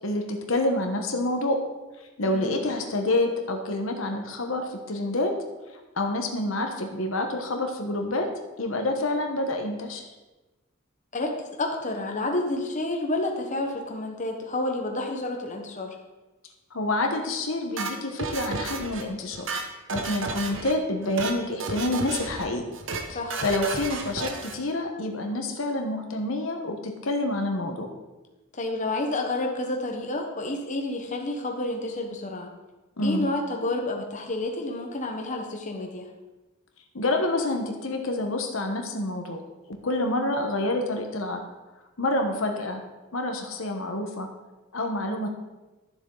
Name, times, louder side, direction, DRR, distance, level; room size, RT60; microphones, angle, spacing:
voice 1, 0.0-1.6 2.2-5.3 6.0-8.3 8.6-10.0 16.7-19.5 19.9-22.6 23.1-27.9 33.0-33.3 36.9-39.4 39.7-41.4 42.0-42.8 43.1-44.3 44.7-45.3, left 2 dB, 80° left, 4 dB, 1.2 m, -27 dB
voice 2, 2.3-2.6 11.1-15.9 23.1-23.4 28.5-32.5 33.0-36.1, left 2 dB, 40° left, 2 dB, 1.2 m, -30 dB
sound 1, 17.8-19.0 19.3-20.7 21.0-21.4 21.6-22.4 22.7-23.0 23.3-24.6, right 3 dB, 65° right, 1.0 m, -32 dB
12.0 x 7.3 x 3.9 m, 1.1 s
head